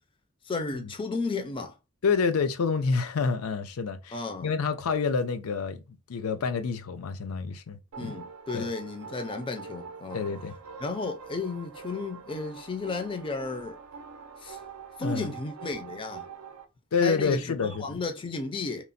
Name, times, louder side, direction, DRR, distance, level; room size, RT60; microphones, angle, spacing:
voice 1, 0.4-1.7 4.1-4.5 8.0-10.2 10.8-13.8 14.4-14.6 15.0-16.3 17.0-18.8, left 3 dB, 25° left, 0.4 m, -33 dB
voice 2, 2.0-8.1 8.5-8.7 10.1-10.5 15.0-15.3 16.9-18.0, left 5 dB, 85° left, 0.5 m, -28 dB
sound 1, 7.9-16.6, right 5 dB, 80° right, 0.4 m, -44 dB
2.9 x 2.1 x 2.5 m
head